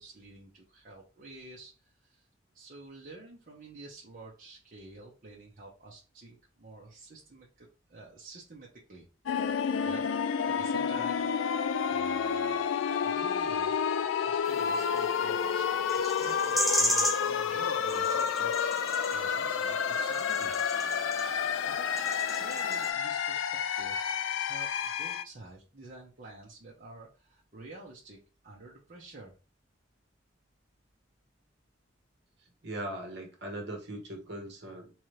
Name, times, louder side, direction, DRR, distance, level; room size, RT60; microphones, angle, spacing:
voice 1, 0.0-2.3 2.5-9.1 9.8-11.3 11.9-12.6 13.0-13.7 14.2-15.7 16.0-20.6 21.6-24.1 24.5-29.3, right 2 dB, 45° right, 0.8 m, -49 dB
sound 1, 9.3-25.2, left 7 dB, 90° left, 0.4 m, -30 dB
sound 2, 14.4-22.9, equal, ahead, 0.4 m, -36 dB
voice 2, 32.6-34.9, right 1 dB, 60° right, 1.2 m, -39 dB
3.8 x 3.0 x 3.2 m
head